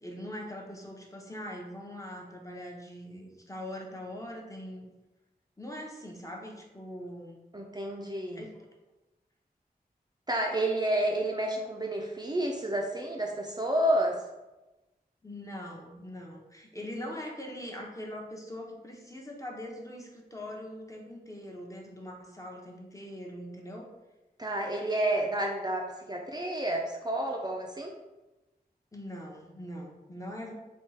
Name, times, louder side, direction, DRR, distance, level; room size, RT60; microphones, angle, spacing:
voice 1, 0.0-4.9 5.6-7.4 8.3-8.7 15.2-23.9 28.9-30.5, left 1 dB, 20° left, -1 dB, 0.7 m, -42 dB
voice 2, 7.5-8.4 10.3-14.2 24.4-28.0, right 1 dB, 25° right, -1 dB, 0.4 m, -30 dB
3.6 x 2.3 x 4.0 m, 1.1 s
wide cardioid pair, 80°, 16 cm